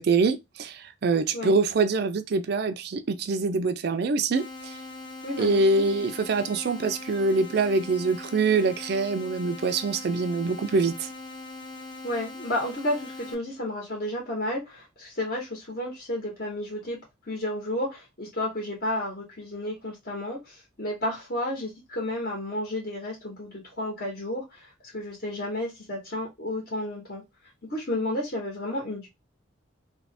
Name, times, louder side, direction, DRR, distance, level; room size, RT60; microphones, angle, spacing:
voice 1, 0.0-4.7 5.4-11.1, right 3 dB, 55° right, 0.4 m, -25 dB
sound 1, 4.3-13.3, left 2 dB, 25° left, 0.5 m, -41 dB
voice 2, 5.2-5.8 12.0-17.0 17.2-27.2 27.7-29.1, left 1 dB, 50° left, 1.1 m, -32 dB
2.8 x 2.6 x 3.2 m
head